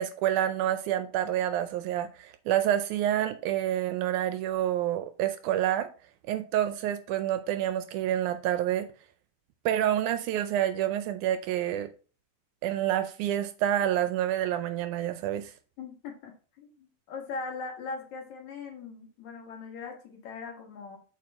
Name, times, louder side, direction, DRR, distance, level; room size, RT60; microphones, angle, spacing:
voice 1, 0.0-5.9 6.3-8.9 9.7-11.9 12.6-15.5, right 11 dB, 80° right, 1.9 m, -28 dB
voice 2, 15.8-21.0, left 4 dB, 65° left, 2.6 m, -40 dB
7.6 x 4.4 x 3.5 m
omnidirectional pair, 3.7 m